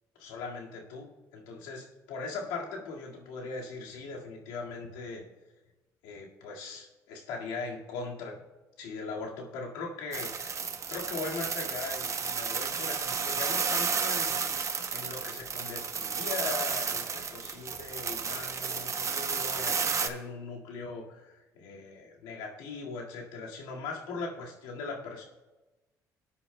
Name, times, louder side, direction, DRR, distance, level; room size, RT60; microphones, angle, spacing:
voice 1, 0.2-5.2 6.0-8.4 8.8-10.3 10.9-14.5 14.9-25.2, left 4 dB, 85° left, -1 dB, 1.9 m, -39 dB
sound 1, 10.1-20.1, right 5 dB, 40° right, 1.0 m, -32 dB
19.0 x 9.8 x 2.2 m, 1.1 s
supercardioid pair, 65°, 8 cm